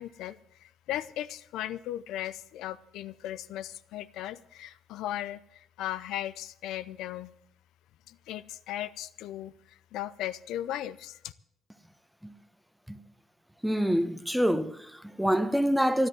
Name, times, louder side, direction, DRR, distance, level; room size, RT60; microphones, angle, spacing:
voice 1, 0.0-7.3 8.1-11.3, left 12 dB, 90° left, 0.5 m, -37 dB
voice 2, 13.6-16.1, equal, ahead, 1.0 m, -26 dB
12.5 x 11.0 x 7.6 m
cardioid pair, 100°, 0 cm